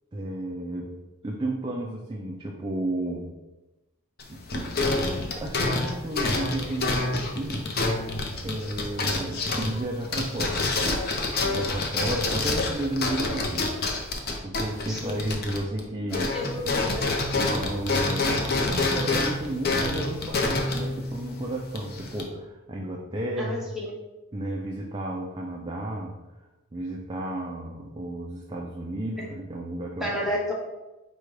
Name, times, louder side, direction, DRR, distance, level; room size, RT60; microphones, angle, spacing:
voice 1, 0.1-0.9 1.2-3.3 4.3-7.7 8.4-11.0 11.4-13.7 14.3-16.4 17.3-23.7 24.3-26.2 26.7-30.3, right 1 dB, 20° right, -1 dB, 0.4 m, -33 dB
sound 1, 4.2-15.8 16.1-22.2, left 2 dB, 45° left, 0.6 m, -27 dB
voice 2, 14.9-15.3 16.1-17.1 23.4-23.9 29.2-29.3 30.0-30.5, left 1 dB, ahead, -4 dB, 0.8 m, -31 dB
5.0 x 2.2 x 4.7 m, 1.1 s
head